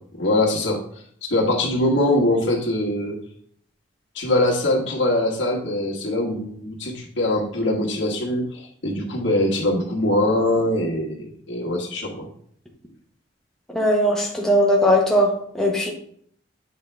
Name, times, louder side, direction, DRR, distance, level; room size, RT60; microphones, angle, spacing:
voice 1, 0.2-0.8 1.3-3.2 4.1-12.3, left 1 dB, 80° left, -1 dB, 1.5 m, -22 dB
voice 2, 13.7-15.9, equal, 5° left, -2 dB, 0.9 m, -19 dB
8.0 x 4.0 x 3.3 m, 0.63 s
head